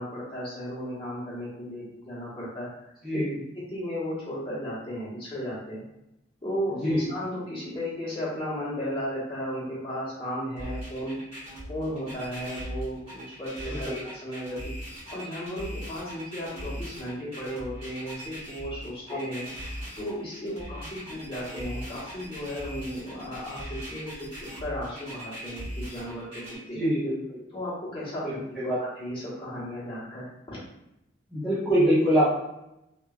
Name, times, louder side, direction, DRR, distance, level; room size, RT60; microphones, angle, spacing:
voice 1, 0.0-2.7 3.1-3.2 3.5-5.8 6.4-11.2 11.7-14.7 15.1-19.4 20.0-26.8 27.5-30.6, equal, 25° left, -8 dB, 0.9 m, -35 dB
sound 1, 10.6-26.6, equal, 30° right, 1.0 m, -39 dB
voice 2, 26.8-27.4 28.6-28.8 31.3-32.3, equal, ahead, -12 dB, 0.6 m, -24 dB
2.9 x 2.3 x 2.3 m, 0.86 s
head